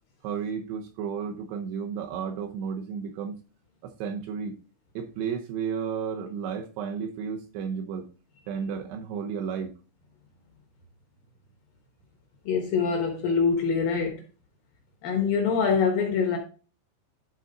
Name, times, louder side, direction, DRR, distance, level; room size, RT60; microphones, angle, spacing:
voice 1, 0.2-3.4 3.8-4.6 5.0-8.1 8.5-9.7, right 7 dB, 75° right, 2.7 m, -33 dB
voice 2, 12.5-14.2 15.0-16.4, left 5 dB, 70° left, 2.3 m, -24 dB
12.0 x 4.1 x 3.9 m
omnidirectional pair, 5.3 m